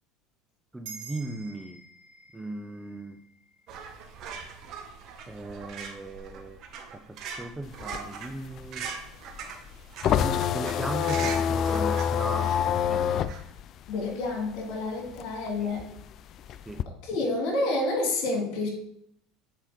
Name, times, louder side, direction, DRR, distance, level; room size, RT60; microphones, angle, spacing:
voice 1, 0.7-1.8 2.3-3.2 5.3-6.6 6.9-8.9 10.0-12.6 12.9-13.3 15.6-15.7 16.7-16.8, right 2 dB, 10° right, 9 dB, 0.5 m, -37 dB
sound 1, 0.8-5.6, right 5 dB, 80° right, 2.6 m, -49 dB
sound 2, 3.7-13.4, right 6 dB, 55° right, 1.3 m, -41 dB
sound 3, 7.6-14.7 15.1-16.8, left 9 dB, 45° left, 0.3 m, -27 dB
voice 2, 13.9-15.8 17.0-18.7, left 2 dB, 65° left, 0 dB, 2.9 m, -29 dB
7.4 x 4.6 x 4.3 m, 0.71 s
supercardioid pair, 105°, 0 cm